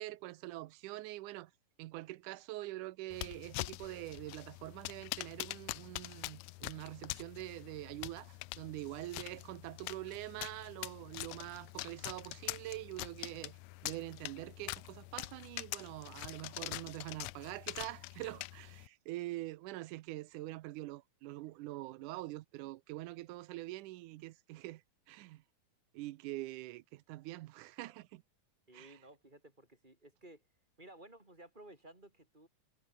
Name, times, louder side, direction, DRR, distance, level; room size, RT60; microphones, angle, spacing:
voice 1, 0.0-1.5 1.8-13.6 13.8-24.8 25.1-25.4 25.9-28.2 28.7-28.9, right 17 dB, 80° right, 2.1 m, -44 dB
sound 1, 3.1-18.9, left 21 dB, 80° left, 1.7 m, -44 dB
voice 2, 28.7-30.5 30.8-32.5, right 1 dB, 15° right, 4.7 m, -56 dB
omnidirectional pair, 3.7 m